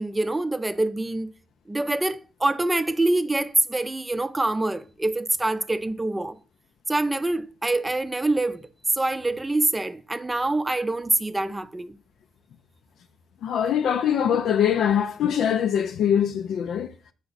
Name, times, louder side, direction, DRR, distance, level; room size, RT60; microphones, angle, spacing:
voice 1, 0.0-1.3 1.7-6.4 6.9-8.7 8.9-12.0, right 2 dB, 15° right, 0.5 m, -25 dB
voice 2, 13.4-16.9, left 9 dB, 70° left, 0.4 m, -23 dB
6.5 x 4.7 x 4.0 m
cardioid pair, 90°, 0 cm